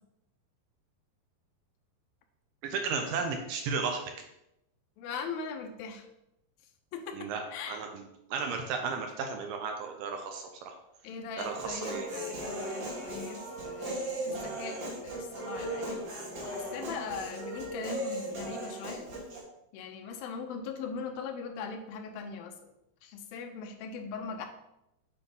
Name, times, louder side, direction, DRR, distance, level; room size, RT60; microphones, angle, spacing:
voice 1, 2.6-4.0 7.1-7.4 7.7-7.9 8.3-10.7 11.4-12.1, right 5 dB, 75° right, 4 dB, 2.1 m, -34 dB
voice 2, 5.0-6.1 6.9-7.9 11.0-19.1 19.7-22.7 23.0-24.5, left 5 dB, 80° left, 6 dB, 2.4 m, -40 dB
Human voice, 11.4-19.4, right 1 dB, 45° right, 1.5 m, -37 dB
8.3 x 3.0 x 5.2 m, 0.85 s
omnidirectional pair, 4.3 m